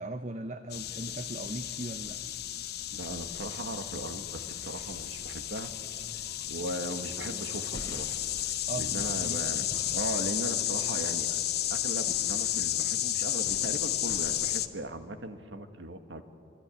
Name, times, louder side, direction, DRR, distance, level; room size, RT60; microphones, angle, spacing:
voice 1, 0.0-2.2 8.7-9.4, right 2 dB, 40° right, 8 dB, 1.0 m, -38 dB
sound 1, 0.7-14.7, left 12 dB, 60° left, 0.9 m, -32 dB
voice 2, 2.9-5.7 6.5-8.2 8.8-11.4 11.7-16.2, right 1 dB, 80° right, 7 dB, 1.8 m, -38 dB
sound 2, 4.2-5.0 6.0-12.8, left 2 dB, 40° left, 3.2 m, -57 dB
sound 3, 7.7-14.5, equal, 20° left, 7.5 m, -48 dB
27.0 x 25.0 x 8.5 m, 2.6 s
head